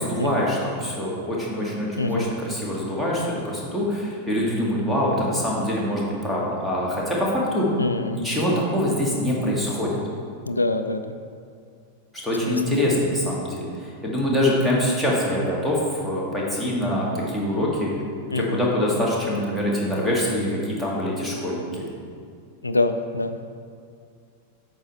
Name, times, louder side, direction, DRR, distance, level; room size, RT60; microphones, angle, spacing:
voice 1, 0.0-7.7 8.1-10.0 12.2-17.9 18.3-21.8, left 1 dB, ahead, -5 dB, 2.1 m, -24 dB
voice 2, 7.8-8.2 10.5-11.2 12.4-12.6 18.3-18.6 22.6-23.4, left 2 dB, 80° left, 9 dB, 0.4 m, -25 dB
8.7 x 6.2 x 4.1 m, 2.3 s
figure-of-eight pair, 90°, 0 cm